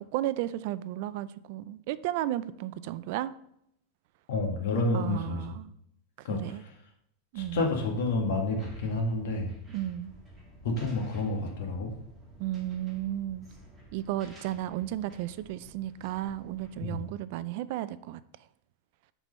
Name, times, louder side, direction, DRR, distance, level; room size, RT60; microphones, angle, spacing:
voice 1, 0.0-3.3 4.9-5.7 6.2-6.6 7.3-7.6 9.7-10.1 12.4-13.5 13.9-18.2, right 13 dB, 50° right, 15 dB, 0.3 m, -34 dB
voice 2, 4.3-5.5 6.2-6.6 7.4-9.5 10.6-11.9 16.8-17.0, left 2 dB, 65° left, 1 dB, 1.9 m, -29 dB
sound 1, 7.3-17.1, right 2 dB, 10° right, 1.7 m, -52 dB
6.1 x 4.5 x 5.4 m, 0.74 s
supercardioid pair, 170°, 0 cm